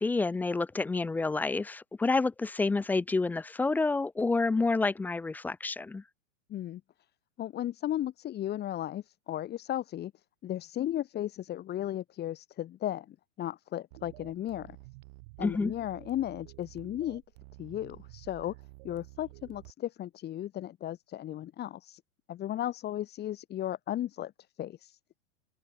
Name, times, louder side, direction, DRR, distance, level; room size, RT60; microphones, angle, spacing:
voice 1, 0.0-6.0 15.4-15.7, left 3 dB, 5° left, 0.4 m, -29 dB
voice 2, 6.5-6.8 7.4-10.1 10.4-14.8 15.4-17.2 17.6-18.5 18.8-22.0 22.3-24.3 24.6-25.0, left 12 dB, 30° left, 5.9 m, -35 dB
sound 1, 13.9-19.7, right 26 dB, 50° right, 6.6 m, -51 dB
open air
hypercardioid pair, 130°, 35 cm